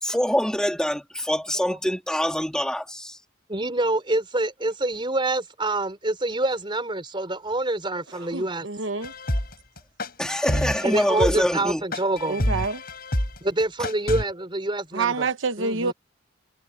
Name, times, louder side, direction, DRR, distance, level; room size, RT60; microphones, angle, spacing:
voice 1, 0.0-3.2 10.2-11.8, equal, 5° left, 3.0 m, -25 dB
voice 2, 3.5-8.7 10.8-12.4 13.4-15.3 15.6-15.9, right 2 dB, 25° right, 4.2 m, -26 dB
voice 3, 8.2-9.1 12.3-12.8 14.9-15.9, right 4 dB, 70° right, 1.0 m, -27 dB
sound 1, 9.0-14.2, left 1 dB, 50° left, 6.3 m, -28 dB
head